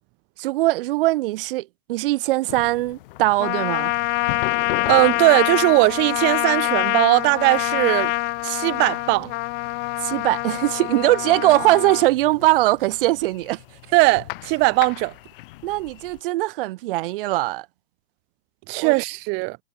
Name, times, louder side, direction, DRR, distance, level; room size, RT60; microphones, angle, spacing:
voice 1, 0.4-3.9 10.0-13.6 15.6-17.7 18.8-18.9, right 18 dB, 50° right, 2.2 m, -21 dB
sound 1, 2.5-16.2, left 18 dB, 50° left, 1.7 m, -39 dB
Trumpet, 3.4-12.1, left 25 dB, 30° left, 1.3 m, -25 dB
voice 2, 4.9-8.1 8.4-9.3 13.9-15.1 18.7-19.6, right 30 dB, 30° right, 1.1 m, -19 dB
hypercardioid pair, 145°, 35 cm